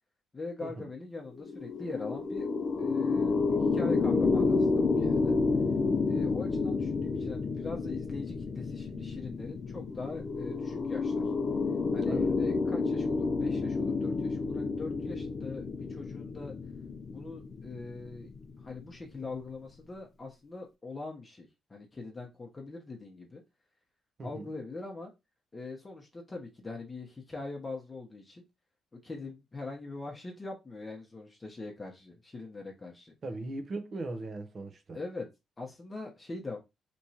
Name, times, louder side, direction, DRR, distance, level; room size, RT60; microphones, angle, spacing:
voice 1, 0.3-2.5 2.8-3.4 3.7-5.4 6.1-11.2 11.9-15.6 15.9-16.5 17.1-18.3 18.6-23.4 24.2-25.1 25.5-28.4 29.0-33.1 34.9-35.3 35.6-36.6, left 3 dB, 25° left, 0.9 m, -42 dB
sound 1, 1.3-18.8, left 4 dB, 40° left, 0.5 m, -30 dB
voice 2, 12.1-12.4 24.2-24.5 33.2-35.0, right 2 dB, 45° right, 0.8 m, -39 dB
3.3 x 3.0 x 2.8 m
cardioid pair, 90°, 0 cm